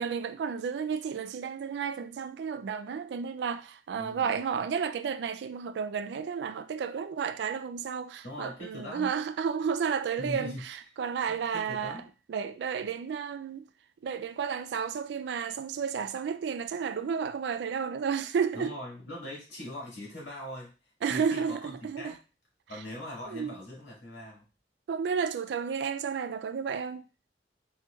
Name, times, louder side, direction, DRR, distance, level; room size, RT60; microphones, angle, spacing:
voice 1, 0.0-12.0 12.3-13.6 14.0-18.7 21.0-22.1 23.3-23.5 24.9-27.0, right 6 dB, 70° right, 0.3 m, -32 dB
voice 2, 3.9-4.4 8.2-9.1 10.2-10.6 11.3-12.1 18.5-20.7 21.0-22.2 22.7-24.4, left 1 dB, 85° left, 1.8 m, -41 dB
4.3 x 2.7 x 2.3 m
head